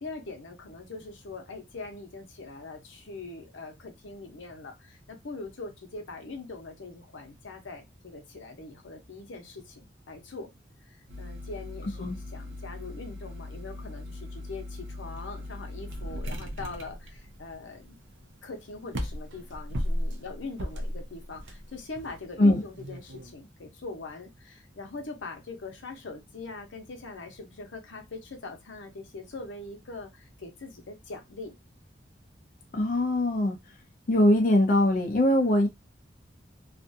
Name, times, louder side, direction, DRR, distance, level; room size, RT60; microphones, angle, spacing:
voice 1, 0.0-10.5 10.9-18.0 18.4-31.6, left 3 dB, 90° left, 0.7 m, -42 dB
sound 1, 11.1-23.3, equal, 85° right, 0.5 m, -38 dB
voice 2, 32.7-33.6 34.1-35.7, left 1 dB, 45° left, 0.4 m, -22 dB
2.4 x 2.3 x 2.6 m
head